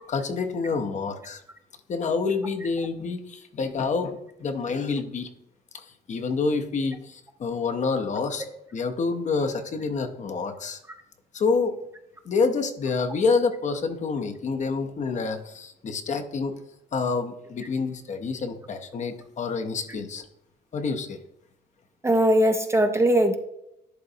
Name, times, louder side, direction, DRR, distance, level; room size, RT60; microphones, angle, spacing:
voice 1, 0.1-1.4 1.9-5.3 5.7-8.5 8.7-10.8 11.3-11.8 12.2-16.6 16.9-20.3 20.7-21.2, left 4 dB, 40° left, 7 dB, 0.6 m, -27 dB
voice 2, 22.0-23.4, right 1 dB, 15° right, 6 dB, 0.4 m, -20 dB
11.0 x 3.8 x 2.7 m, 0.82 s
cardioid pair, 155°, 18 cm